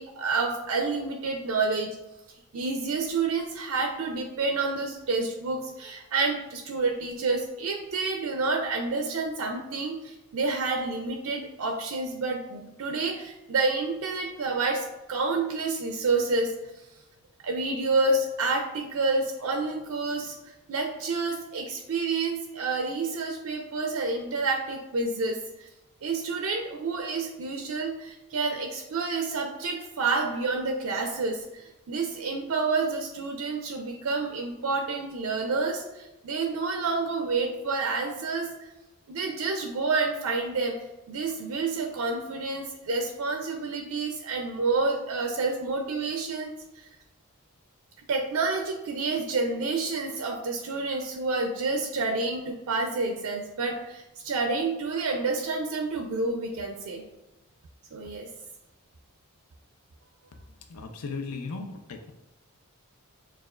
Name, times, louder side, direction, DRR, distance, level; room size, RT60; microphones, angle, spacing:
voice 1, 0.0-2.0 2.5-16.5 17.4-20.3 20.7-25.7 26.0-38.5 39.1-40.8 41.1-46.9 48.1-57.0 57.9-58.3, right 3 dB, 70° right, 4 dB, 0.4 m, -29 dB
voice 2, 60.7-62.1, left 4 dB, 85° left, 5 dB, 0.5 m, -36 dB
6.4 x 2.4 x 2.3 m, 0.98 s
head